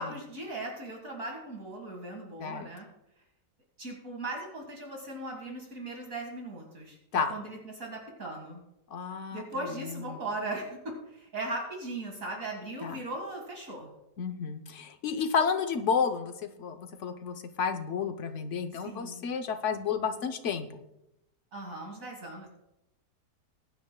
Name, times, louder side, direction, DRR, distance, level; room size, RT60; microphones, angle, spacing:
voice 1, 0.0-2.9 3.8-8.6 9.3-13.9 18.8-19.2 21.5-22.5, right 2 dB, 55° right, 1 dB, 2.2 m, -38 dB
voice 2, 8.9-9.4 9.9-10.2 12.8-13.0 14.2-16.3 16.6-20.8, left 6 dB, 55° left, 8 dB, 1.0 m, -31 dB
20.5 x 9.5 x 2.2 m, 0.87 s
omnidirectional pair, 1.8 m